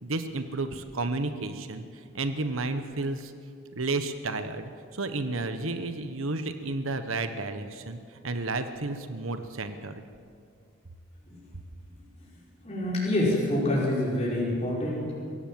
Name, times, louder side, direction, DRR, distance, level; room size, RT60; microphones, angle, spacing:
voice 1, 0.0-3.3 3.7-9.9, right 3 dB, 80° right, 8 dB, 1.3 m, -32 dB
voice 2, 12.6-15.1, left 1 dB, 30° left, -6 dB, 5.0 m, -27 dB
23.5 x 16.0 x 7.7 m, 2.3 s
head